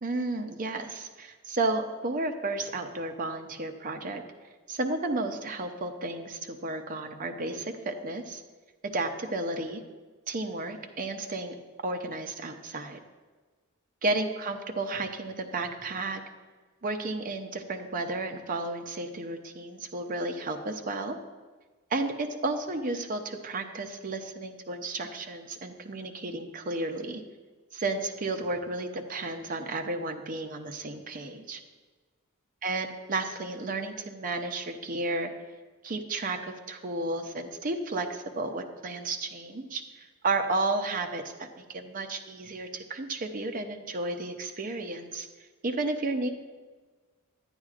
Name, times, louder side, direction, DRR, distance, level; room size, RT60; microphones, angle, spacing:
voice 1, 0.0-4.2 4.7-8.4 8.8-9.8 10.3-11.6 11.8-13.0 14.0-16.2 16.8-21.2 21.9-27.2 27.7-31.6 32.6-35.3 35.8-36.4 36.7-39.8 40.2-45.3 45.6-46.3, right 2 dB, 40° right, 5 dB, 0.6 m, -32 dB
9.7 x 9.7 x 2.5 m, 1.4 s
head